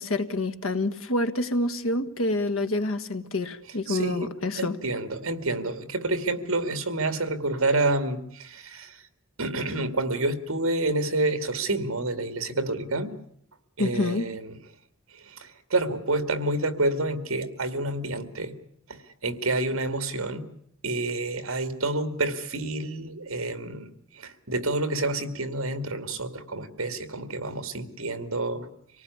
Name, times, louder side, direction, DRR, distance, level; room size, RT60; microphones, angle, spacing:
voice 1, 0.0-4.8 13.8-14.3, left 2 dB, 70° left, 9 dB, 1.6 m, -27 dB
voice 2, 3.9-9.0 9.4-13.2 13.8-14.6 15.1-18.6 18.9-20.5 20.8-23.9 24.1-28.7, right 2 dB, 70° right, 10 dB, 2.4 m, -28 dB
25.5 x 18.5 x 9.6 m, 0.67 s
head